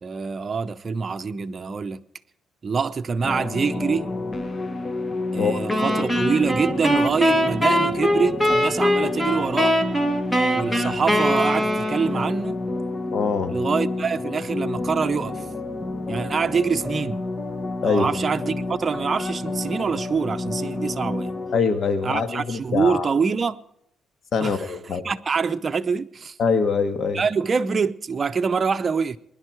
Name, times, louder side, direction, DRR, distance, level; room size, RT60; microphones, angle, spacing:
voice 1, 0.0-2.1 2.6-4.1 5.3-9.8 10.5-12.7 13.5-15.5 16.1-17.2 17.8-21.4 22.0-23.6 24.4-26.4 27.1-29.2, right 5 dB, 40° right, 0.7 m, -25 dB
sound 1, 3.2-21.6, left 2 dB, 30° left, 1.3 m, -30 dB
voice 2, 5.4-6.0 13.1-13.5 17.8-18.1 21.5-23.1 24.3-25.0 26.4-27.2, left 5 dB, 55° left, 1.6 m, -23 dB
sound 2, 5.7-12.3, equal, 10° left, 1.9 m, -22 dB
21.0 x 11.0 x 4.7 m
cardioid pair, 90°, 0 cm